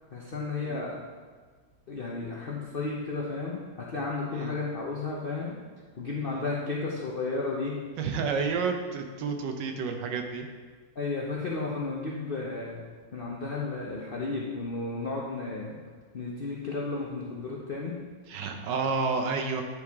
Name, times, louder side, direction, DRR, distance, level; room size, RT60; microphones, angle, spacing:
voice 1, 0.1-1.0 1.9-5.6 6.0-7.7 11.0-12.8 13.1-15.8 16.1-18.0, left 3 dB, 50° left, -4 dB, 0.6 m, -33 dB
voice 2, 8.0-10.5 18.3-19.6, right 5 dB, 80° right, 5 dB, 1.4 m, -30 dB
9.8 x 4.8 x 3.5 m, 1.5 s
omnidirectional pair, 1.9 m